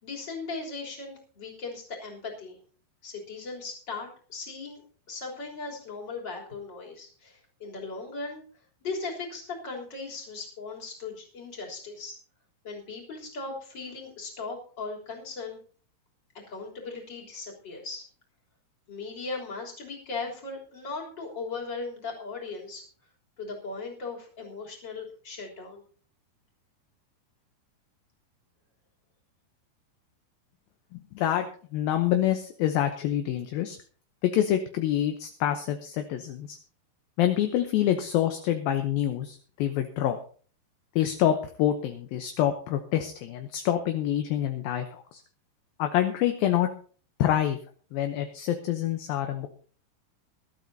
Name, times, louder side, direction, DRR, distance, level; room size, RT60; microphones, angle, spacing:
voice 1, 0.0-2.6 3.0-4.8 5.1-8.4 8.8-12.1 12.6-15.6 16.5-18.0 18.9-22.9 23.4-25.8, left 4 dB, 30° left, -1 dB, 3.7 m, -38 dB
voice 2, 31.2-33.8 34.2-36.6 37.2-40.2 41.0-45.2 45.8-46.7 47.2-47.6 47.9-49.5, left 11 dB, 75° left, 6 dB, 2.5 m, -26 dB
21.5 x 12.5 x 2.8 m, 0.42 s
omnidirectional pair, 4.7 m